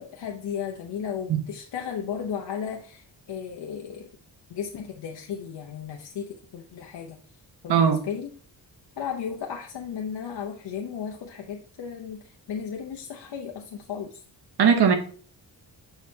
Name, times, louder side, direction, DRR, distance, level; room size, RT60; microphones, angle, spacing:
voice 1, 0.0-4.1 4.5-7.2 7.6-8.3 9.0-14.2, left 7 dB, 65° left, 0 dB, 0.8 m, -35 dB
voice 2, 7.7-8.0 14.6-15.0, right 7 dB, 65° right, 7 dB, 1.0 m, -19 dB
6.5 x 5.8 x 2.8 m, 0.43 s
wide cardioid pair, 155°, 43 cm